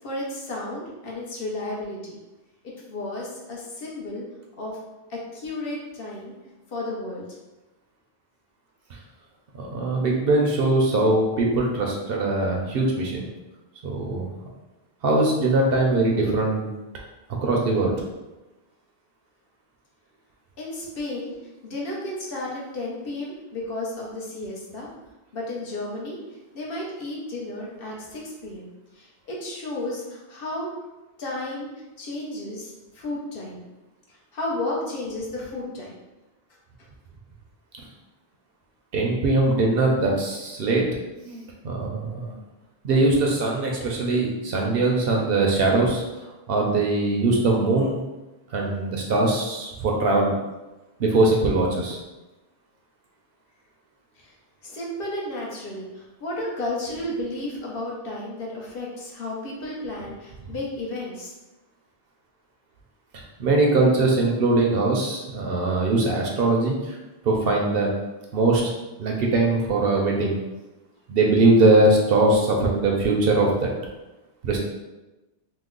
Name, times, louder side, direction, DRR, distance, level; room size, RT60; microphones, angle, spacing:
voice 1, 0.0-2.2 2.9-4.2 4.6-4.8 5.1-6.3 6.7-7.3 20.6-21.3 21.6-24.9 25.3-26.2 26.5-30.7 31.2-31.7 32.0-33.7 34.3-35.9 54.2-54.3 54.6-61.3, left 1 dB, 60° left, -4 dB, 0.9 m, -33 dB
voice 2, 9.6-13.3 13.8-14.3 15.0-16.7 17.4-17.9 38.9-40.9 41.2-42.3 42.8-46.0 46.5-48.0 48.5-50.3 51.0-52.0 63.1-67.0 67.2-67.9 68.3-68.7 69.0-70.3 71.1-73.7 74.4-74.6, right 2 dB, 65° right, -1 dB, 0.7 m, -21 dB
3.0 x 2.0 x 3.7 m, 1.1 s
omnidirectional pair, 1.1 m